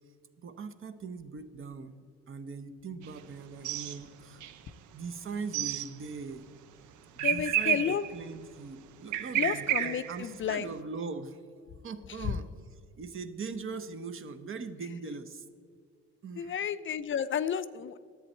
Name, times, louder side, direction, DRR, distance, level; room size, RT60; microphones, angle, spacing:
voice 1, 0.4-4.4 4.9-6.5 7.2-11.4 11.8-15.4 16.2-16.6, right 4 dB, 45° right, 11 dB, 0.8 m, -41 dB
sound 1, 3.0-3.2 3.5-4.0 4.4-4.5 5.5-5.9 7.2-8.2 9.1-10.3, right 11 dB, 80° right, 0.6 m, -30 dB
voice 2, 7.2-8.1 9.3-10.7 12.2-12.4 16.4-18.0, left 8 dB, 40° left, 14 dB, 0.4 m, -32 dB
10.5 x 7.9 x 4.3 m, 2.2 s
cardioid pair, 90°, 30 cm